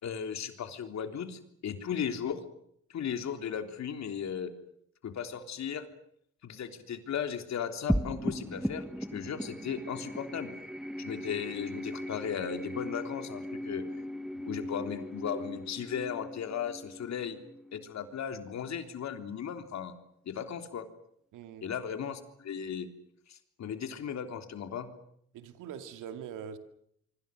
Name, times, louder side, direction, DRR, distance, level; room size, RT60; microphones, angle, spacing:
voice 1, 0.0-2.5 2.9-4.5 5.0-5.9 6.4-10.5 11.0-13.8 14.5-17.4 17.7-19.9 20.3-20.9 21.6-22.9 23.3-24.9, left 8 dB, 65° left, 3.5 m, -36 dB
sound 1, 7.9-18.5, equal, ahead, 1.1 m, -37 dB
voice 2, 21.3-21.7 25.3-26.6, right 8 dB, 90° right, 2.5 m, -43 dB
26.0 x 24.5 x 6.5 m
cardioid pair, 90°, 30 cm